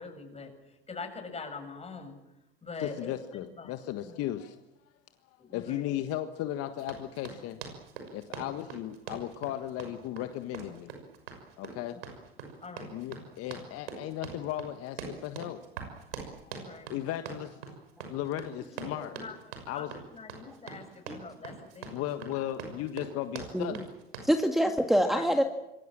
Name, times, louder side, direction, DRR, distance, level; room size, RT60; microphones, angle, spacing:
voice 1, 0.0-2.2 2.6-4.2 5.4-5.9 12.6-12.9 16.5-16.9 18.8-19.4 19.7-22.1 25.0-25.3, left 4 dB, 20° left, 6 dB, 6.8 m, -44 dB
voice 2, 2.8-4.6 5.5-7.6 8.1-10.9 11.6-12.0 12.9-15.6 16.4-16.6 16.9-17.8 18.0-19.2 19.7-19.9 21.9-23.8, left 13 dB, 50° left, 8 dB, 1.6 m, -36 dB
Run, 6.8-24.3, right 6 dB, 75° right, 6.2 m, -43 dB
voice 3, 24.2-25.4, equal, ahead, 4 dB, 1.9 m, -25 dB
27.0 x 22.5 x 7.6 m, 0.93 s
hypercardioid pair, 80°, 30 cm